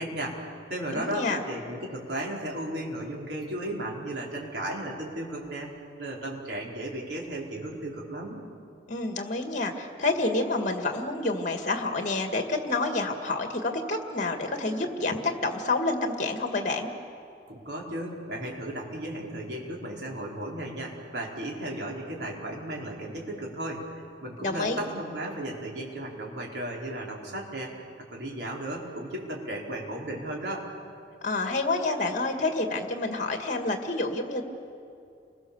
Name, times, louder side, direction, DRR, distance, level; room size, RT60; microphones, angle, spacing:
voice 1, 0.0-5.7 6.0-8.4 17.5-23.9 24.2-30.7, right 1 dB, 65° right, -2 dB, 4.8 m, -35 dB
voice 2, 1.0-1.4 8.9-16.9 24.4-24.8 31.2-34.4, left 2 dB, 45° left, 5 dB, 2.0 m, -28 dB
29.5 x 22.0 x 7.2 m, 2.6 s
head